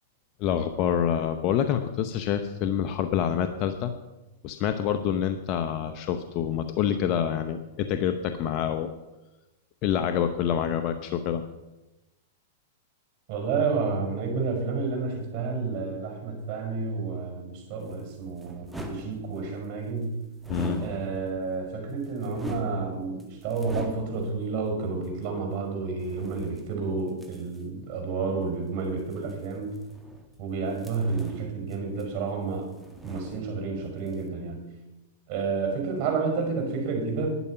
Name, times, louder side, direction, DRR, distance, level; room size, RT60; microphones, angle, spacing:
voice 1, 0.4-3.9 4.4-8.9 9.8-11.4 20.5-20.8, left 9 dB, 40° left, 8 dB, 0.8 m, -27 dB
voice 2, 13.3-20.2 20.8-29.7 30.4-32.7 33.0-34.7 35.3-37.3, right 4 dB, 50° right, 3 dB, 5.6 m, -30 dB
sound 1, 17.8-19.7 20.4-21.5 21.9-24.4 25.0-25.1 26.0-27.6 29.0-30.4 30.7-32.4 32.6-33.8 34.1-34.3, right 1 dB, 5° right, 1.7 m, -42 dB
11.0 x 10.0 x 5.8 m, 1.0 s
hypercardioid pair, 125°, 0 cm